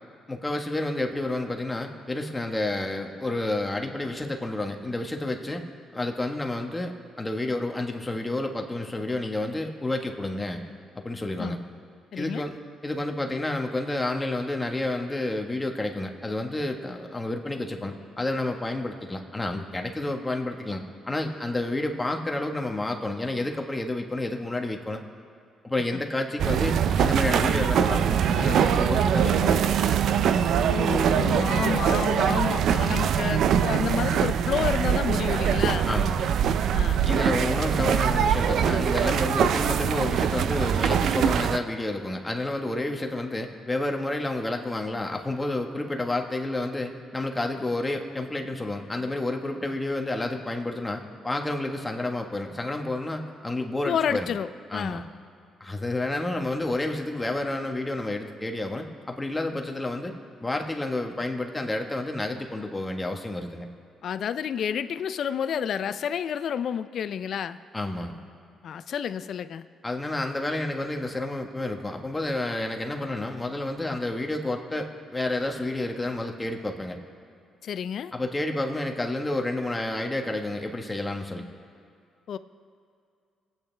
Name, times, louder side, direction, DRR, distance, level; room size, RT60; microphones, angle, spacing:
voice 1, 0.3-5.6 5.9-10.6 11.0-11.6 12.1-12.6 12.8-25.0 25.6-29.6 35.9-36.2 37.0-54.3 54.7-55.0 55.6-60.1 60.4-63.7 67.7-68.2 69.8-77.0 78.1-81.4, left 2 dB, 15° left, 3 dB, 1.4 m, -30 dB
voice 2, 12.1-12.4 25.9-26.0 30.7-35.9 36.7-37.1 53.9-55.1 64.0-67.6 68.6-69.6 77.6-78.1 82.3-82.4, left 8 dB, 65° left, 13 dB, 0.5 m, -30 dB
sound 1, 26.4-41.6, right 8 dB, 70° right, 0.5 m, -23 dB
25.5 x 8.9 x 3.4 m, 2.4 s
cardioid pair, 90°, 0 cm